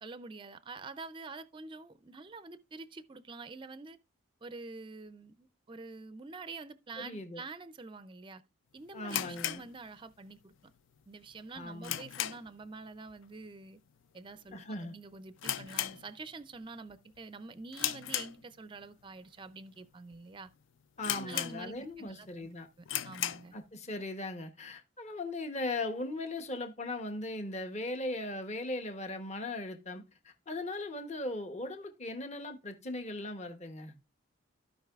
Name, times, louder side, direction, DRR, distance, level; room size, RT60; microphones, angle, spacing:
voice 1, 0.0-4.0 4.4-8.4 8.7-10.7 11.1-13.8 14.1-20.5 21.1-22.5 22.8-23.5, right 3 dB, 25° right, 0.4 m, -47 dB
voice 2, 7.0-7.4 8.9-9.6 11.5-12.0 14.5-14.9 21.0-22.7 23.5-33.9, left 2 dB, 35° left, 0.9 m, -38 dB
sound 1, 9.0-10.4 10.7-10.8 11.3-12.7 12.9-13.2 13.5-13.6 14.3-14.6 14.9-15.0 15.4-16.5 16.9-17.2 17.7-18.8 19.4-19.5 20.1-20.2 20.5-20.6 21.0-22.0 22.3-22.4 22.8-23.5, left 12 dB, 65° left, 0.4 m, -36 dB
15.5 x 5.2 x 2.4 m
head